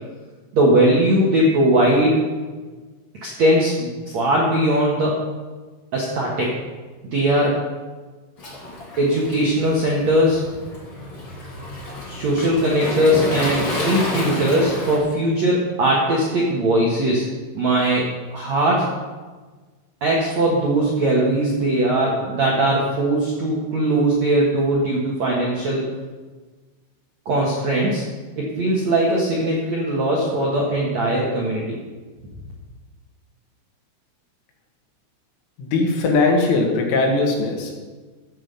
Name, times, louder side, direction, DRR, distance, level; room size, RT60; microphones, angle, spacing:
voice 1, 0.5-2.2 3.2-5.2 5.9-6.5 7.1-7.6 9.0-10.4 12.1-17.2 17.5-18.1 18.3-18.9 20.0-25.8 27.3-28.0 28.4-31.8, right 1 dB, 65° right, -3 dB, 1.8 m, -19 dB
Waves surf, 8.4-15.0, left 1 dB, 30° left, 2.7 m, -30 dB
voice 2, 35.6-37.7, left 3 dB, 75° left, 0 dB, 4.4 m, -19 dB
15.0 x 8.0 x 5.5 m, 1.3 s
omnidirectional pair, 5.8 m